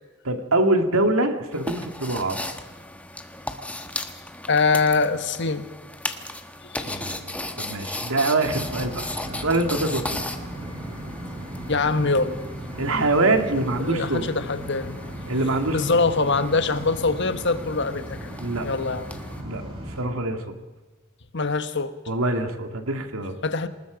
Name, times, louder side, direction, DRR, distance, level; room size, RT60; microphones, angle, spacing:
voice 1, 0.2-2.4 6.8-10.2 12.8-14.3 15.3-16.0 18.4-18.7 19.4-19.6 20.0-20.6 22.1-23.4, right 2 dB, 85° right, 6 dB, 2.4 m, -24 dB
sound 1, 1.5-19.4, left 1 dB, 5° left, 1.3 m, -37 dB
voice 2, 4.5-5.7 6.6-7.0 11.7-12.4 13.6-15.0 15.7-18.4 18.6-19.1 21.3-21.9 23.4-23.7, left 3 dB, 55° left, 10 dB, 1.4 m, -24 dB
sound 2, 8.4-20.0, right 1 dB, 25° right, 7.0 m, -36 dB
27.0 x 20.0 x 5.2 m, 1.2 s
head